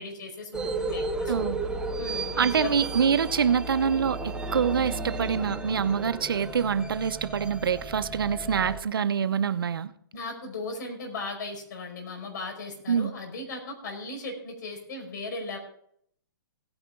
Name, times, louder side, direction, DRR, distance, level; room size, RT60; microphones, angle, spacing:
voice 1, 0.0-1.5 2.0-2.7 10.1-15.6, left 3 dB, 60° left, 5.0 m, -37 dB
sound 1, 0.5-8.8, right 2 dB, 5° right, 0.8 m, -34 dB
voice 2, 2.4-9.9 12.9-13.1, right 7 dB, 85° right, 0.9 m, -25 dB
17.0 x 9.9 x 3.7 m
hypercardioid pair, 145°, 12 cm